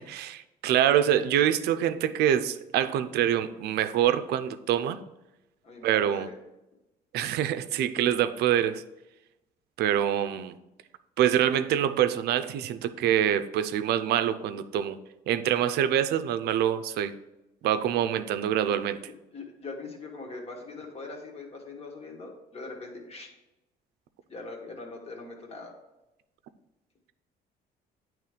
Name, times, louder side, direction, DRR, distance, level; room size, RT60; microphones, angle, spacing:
voice 1, 0.0-5.0 5.8-6.3 7.1-8.8 9.8-10.5 11.2-15.0 15.3-17.1 17.6-19.0, right 10 dB, 75° right, 0.5 m, -25 dB
voice 2, 5.6-6.3 19.3-23.3 24.3-25.7, left 3 dB, 35° left, 1.5 m, -41 dB
9.1 x 3.1 x 5.0 m
cardioid pair, 110°, 17 cm